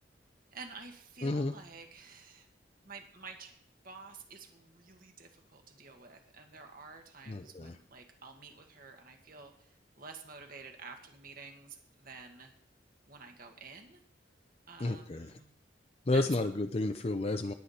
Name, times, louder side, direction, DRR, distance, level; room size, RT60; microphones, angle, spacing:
voice 1, 0.5-2.5 2.8-3.5 3.8-12.5 13.1-14.0 14.7-15.5 16.1-16.5, right 4 dB, 50° right, 4 dB, 1.7 m, -50 dB
voice 2, 1.2-1.5 7.3-7.7 14.8-15.3 16.1-17.5, left 2 dB, 35° left, 6 dB, 0.5 m, -31 dB
19.5 x 8.0 x 4.3 m, 0.65 s
head